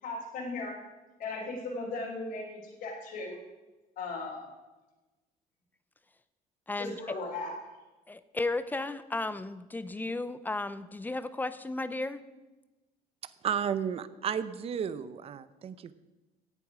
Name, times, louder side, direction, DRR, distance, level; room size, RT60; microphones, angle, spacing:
voice 1, 0.0-0.8 1.2-3.4 4.0-4.5 6.8-7.5, left 3 dB, 65° left, -3 dB, 3.3 m, -37 dB
voice 2, 6.7-7.0 8.1-12.2, left 2 dB, 10° left, 13 dB, 0.5 m, -34 dB
voice 3, 13.2-15.9, right 8 dB, 40° right, 14 dB, 0.6 m, -33 dB
16.5 x 7.2 x 4.9 m, 1.1 s
cardioid pair, 145°, 16 cm